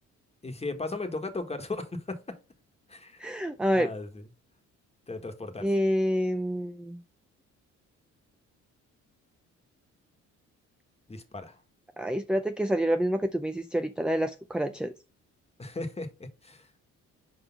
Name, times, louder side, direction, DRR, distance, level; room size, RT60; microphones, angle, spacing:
voice 1, 0.4-2.4 2.9-3.2 3.7-4.2 5.1-5.7 11.1-11.5 15.6-16.7, left 2 dB, 20° left, 1.4 m, -36 dB
voice 2, 3.2-3.9 5.6-7.0 12.0-14.9, equal, 5° right, 0.4 m, -27 dB
5.0 x 4.1 x 5.9 m
cardioid pair, 90°, 30 cm